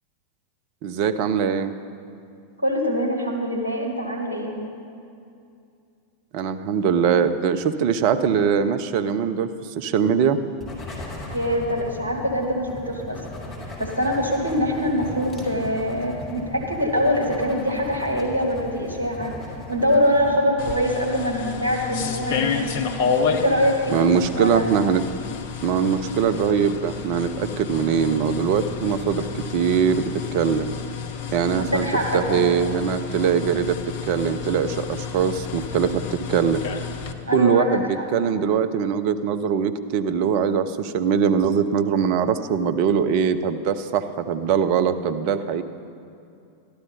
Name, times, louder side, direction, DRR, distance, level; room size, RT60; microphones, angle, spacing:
voice 1, 0.8-1.7 6.3-9.5 9.8-10.4 23.9-25.0 25.6-30.7 31.3-31.9 32.1-33.8 34.1-36.6 37.3-45.6, right 7 dB, 45° right, 10 dB, 0.5 m, -22 dB
voice 2, 2.6-4.6 11.3-13.2 13.8-19.3 19.7-22.7 23.3-24.7 31.6-32.5 37.3-37.7 38.0-38.1, equal, 80° right, -1 dB, 1.7 m, -24 dB
sound 1, 10.6-20.4, left 2 dB, 10° left, 2.9 m, -37 dB
sound 2, 20.6-37.1, left 6 dB, 50° left, 0.7 m, -30 dB
12.5 x 12.0 x 4.1 m, 2.5 s
figure-of-eight pair, 90°, 0 cm